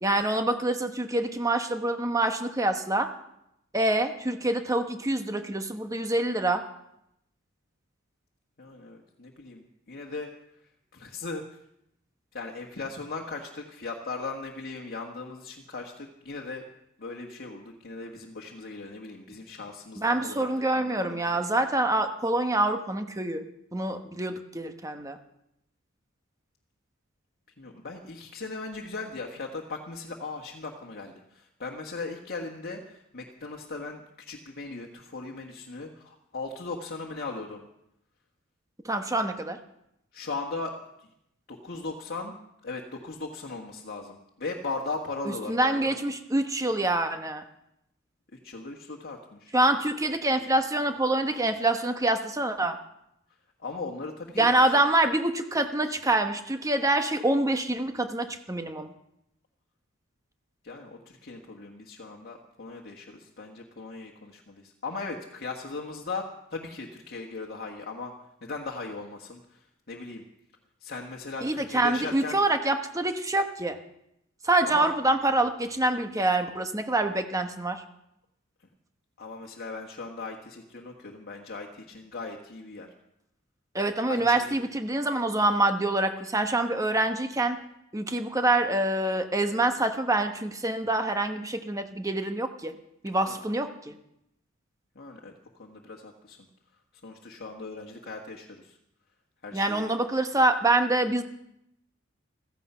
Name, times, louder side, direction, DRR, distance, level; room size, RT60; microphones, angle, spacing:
voice 1, 0.0-3.1 3.7-6.7 20.0-23.4 23.7-25.2 38.8-39.6 45.5-47.4 49.5-52.8 54.4-58.9 71.4-73.8 74.4-77.8 83.7-87.6 87.9-92.7 93.0-93.9 99.5-101.2, right 2 dB, 15° right, 7 dB, 1.2 m, -26 dB
voice 2, 8.6-10.3 10.9-11.4 12.3-16.6 17.0-21.4 27.6-37.6 40.1-40.7 41.5-46.0 48.3-49.5 53.6-54.8 60.6-68.1 68.4-70.2 70.8-72.4 74.6-74.9 79.2-82.9 84.1-84.6 93.3-93.4 94.9-95.3 95.6-96.4 97.0-98.8 99.4-99.9, left 3 dB, 50° left, 1 dB, 1.5 m, -38 dB
15.5 x 14.5 x 5.6 m, 0.80 s
head